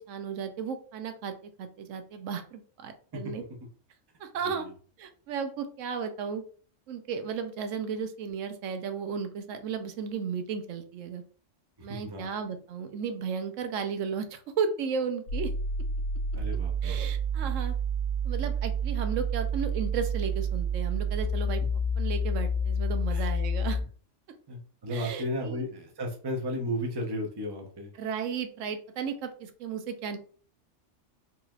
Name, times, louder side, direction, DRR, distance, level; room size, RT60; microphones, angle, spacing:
voice 1, 0.0-3.4 4.2-4.7 5.0-6.4 6.9-11.2 11.8-15.5 16.8-17.8 18.2-21.6 22.0-23.8 24.9-25.6 28.0-30.2, right 6 dB, 85° right, 8 dB, 1.0 m, -34 dB
voice 2, 11.8-12.3 16.4-17.0 23.1-23.3 24.5-27.9, equal, 25° right, 2 dB, 0.6 m, -34 dB
sound 1, 15.3-23.8, right 1 dB, 90° left, 1.6 m, -29 dB
4.1 x 2.9 x 2.3 m, 0.43 s
omnidirectional pair, 1.3 m